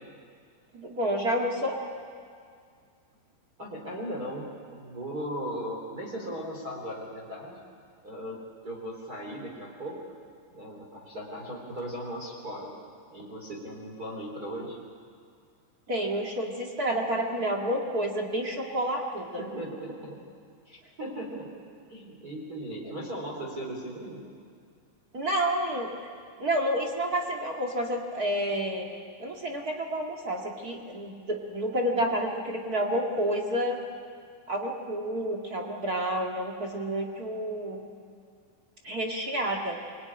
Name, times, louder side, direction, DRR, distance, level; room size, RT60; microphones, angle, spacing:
voice 1, 0.7-1.8 15.9-19.4 25.1-25.9 26.4-28.9 29.2-33.8 34.5-37.8 38.8-39.8, right 1 dB, 40° right, 0 dB, 1.4 m, -29 dB
voice 2, 3.6-7.6 8.0-8.4 8.6-10.0 10.5-12.7 13.1-14.8 19.4-20.2 20.7-21.5 21.9-24.2, equal, 25° right, -2 dB, 3.5 m, -37 dB
24.5 x 22.0 x 9.8 m, 2.2 s
omnidirectional pair, 5.0 m